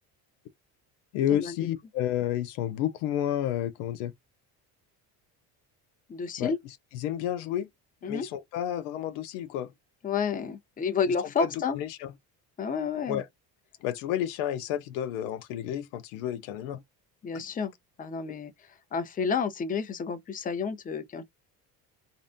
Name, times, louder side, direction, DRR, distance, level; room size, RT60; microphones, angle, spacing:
voice 1, 1.1-4.1 6.4-6.5 6.9-7.7 8.0-9.7 11.4-11.5 11.7-12.1 13.1-13.3 13.8-16.8, left 11 dB, 85° left, 0.6 m, -30 dB
voice 2, 6.1-6.6 8.0-8.3 10.0-11.8 12.6-13.2 17.2-17.7 18.0-18.5 18.9-21.2, left 5 dB, 20° left, 0.5 m, -30 dB
2.6 x 2.1 x 2.5 m
supercardioid pair, 80°, 44 cm